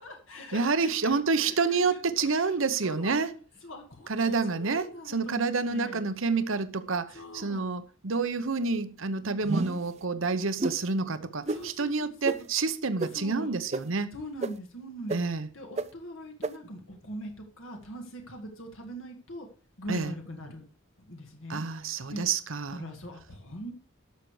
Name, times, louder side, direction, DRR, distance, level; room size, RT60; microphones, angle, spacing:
voice 1, 0.0-2.0 2.3-2.5 2.8-3.2 3.6-6.0 7.1-7.6 11.5-12.4 13.1-13.5 14.1-15.2 15.5-19.5 19.8-20.6 21.1-21.6 22.1-22.2 22.7-23.7, equal, 65° left, 2.0 m, -42 dB
voice 2, 0.5-3.3 4.1-14.1 15.1-15.5 19.9-20.1 21.5-22.9, right 4 dB, 65° right, 0.9 m, -28 dB
sound 1, 9.4-9.9 10.6-10.8 11.5-11.6 12.2-12.4 13.0-13.1 13.7-13.8 14.4-14.5 15.1-15.2 15.8-15.9 16.4-16.5, right 2 dB, 30° right, 0.5 m, -29 dB
12.5 x 6.8 x 4.8 m
head